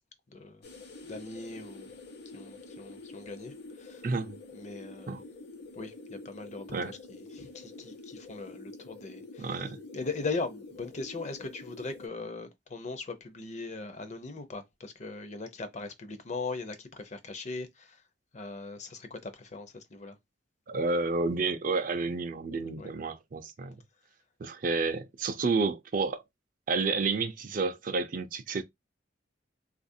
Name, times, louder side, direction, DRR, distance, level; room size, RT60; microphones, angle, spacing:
voice 1, 0.3-0.6 1.0-1.9 2.3-4.1 4.5-5.2 5.8-9.6 9.9-18.0 18.3-20.2 22.8-22.9, left 3 dB, 35° left, 0.6 m, -39 dB
sound 1, 0.6-12.1, left 3 dB, 55° left, 0.9 m, -47 dB
voice 2, 4.0-4.4 5.1-5.2 6.7-6.9 9.4-9.8 20.7-23.8 24.4-26.2 26.7-28.6, right 3 dB, 45° right, 0.4 m, -30 dB
3.7 x 2.4 x 2.6 m
head